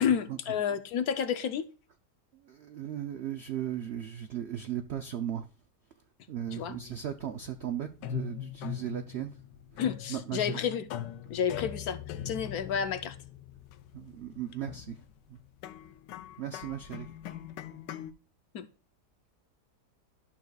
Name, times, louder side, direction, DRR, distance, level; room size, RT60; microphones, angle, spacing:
voice 1, 0.0-1.7 6.5-6.8 9.8-10.9 11.3-12.0 12.2-13.2 18.5-18.6, left 8 dB, 65° left, 1.0 m, -30 dB
voice 2, 2.4-5.4 6.3-9.3 10.1-10.6 13.9-15.0 15.3-15.4 16.4-17.1, right 10 dB, 80° right, 0.5 m, -36 dB
sound 1, 6.5-18.1, left 10 dB, 85° left, 1.2 m, -42 dB
11.5 x 6.5 x 2.3 m
omnidirectional pair, 1.8 m